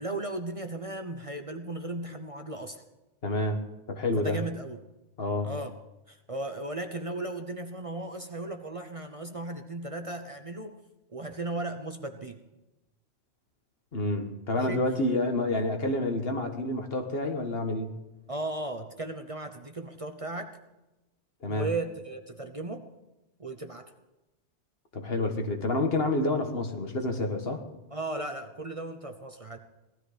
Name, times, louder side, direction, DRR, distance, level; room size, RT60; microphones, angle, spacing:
voice 1, 0.0-2.8 4.2-4.8 5.4-5.7 6.1-10.8 11.1-12.4 14.5-14.8 18.3-20.5 21.5-22.8 23.4-23.9 27.9-29.6, right 2 dB, 30° right, 6 dB, 0.9 m, -36 dB
voice 2, 3.2-3.6 3.9-4.4 5.2-5.5 13.9-17.9 21.4-21.7 24.9-27.6, left 2 dB, 60° left, 5 dB, 1.7 m, -28 dB
18.0 x 13.5 x 5.1 m, 0.99 s
omnidirectional pair, 1.2 m